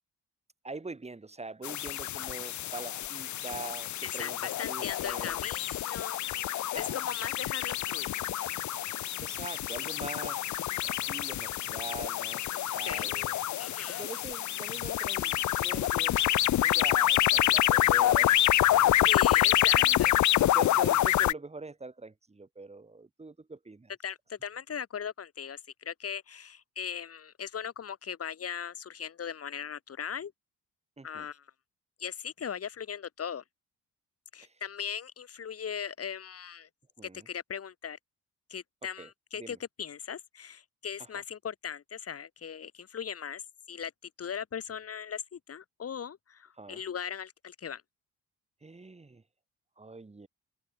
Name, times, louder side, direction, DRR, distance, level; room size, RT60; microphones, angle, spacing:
voice 1, 0.6-4.4 4.6-5.4 6.7-7.1 9.2-13.4 14.0-16.3 16.6-18.5 18.8-18.9 19.7-23.9 31.0-31.3 34.4-34.5 37.0-37.3 39.0-39.1 39.4-39.6 46.6-46.8 48.6-49.2 49.8-50.3, right 3 dB, 20° right, 5.1 m, -44 dB
sound 1, 1.6-21.3, left 13 dB, 70° left, 1.3 m, -27 dB
voice 2, 4.0-6.4 6.7-8.1 12.8-13.1 13.6-14.1 19.1-20.2 24.0-30.3 31.0-31.5 32.0-33.4 34.3-36.7 37.3-38.0 38.5-43.4 43.7-43.9 44.2-47.8, left 7 dB, 50° left, 4.8 m, -39 dB
cardioid pair, 90°, 30 cm